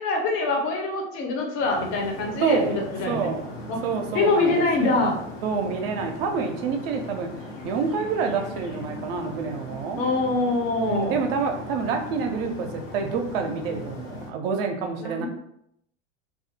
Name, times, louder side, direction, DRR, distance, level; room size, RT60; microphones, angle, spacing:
voice 1, 0.0-3.3 3.7-3.8 4.1-5.1 10.0-11.2 15.0-15.3, left 3 dB, 35° left, 1 dB, 0.6 m, -24 dB
sound 1, 1.6-14.3, left 1 dB, 85° left, 0.9 m, -38 dB
voice 2, 2.4-2.8 3.1-3.5 3.8-5.1 5.4-7.3 7.6-10.0 10.9-15.3, right 5 dB, 50° right, 4 dB, 0.4 m, -27 dB
2.3 x 2.0 x 2.7 m, 0.74 s
hypercardioid pair, 110°, 38 cm